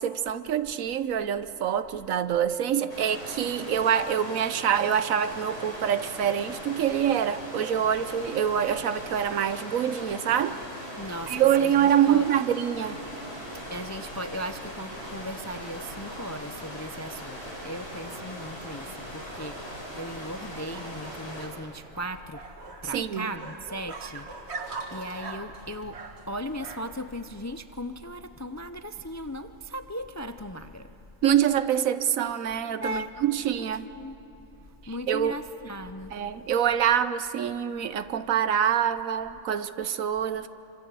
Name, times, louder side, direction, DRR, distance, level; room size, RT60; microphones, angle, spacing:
voice 1, 0.0-10.6 11.3-13.0 22.9-23.3 31.2-33.9 35.1-35.4 36.1-40.5, right 9 dB, 80° right, 13 dB, 1.2 m, -25 dB
sound 1, 2.9-21.5, equal, 50° left, 5.6 m, -40 dB
voice 2, 11.0-12.3 13.5-22.4 22.8-26.0 26.3-30.9 32.8-33.1 33.6-34.2 34.9-36.1, equal, 25° left, 9 dB, 0.4 m, -37 dB
sound 2, 18.2-27.1, right 4 dB, 55° right, 1.8 m, -43 dB
26.5 x 25.5 x 8.3 m, 2.9 s
omnidirectional pair, 1.4 m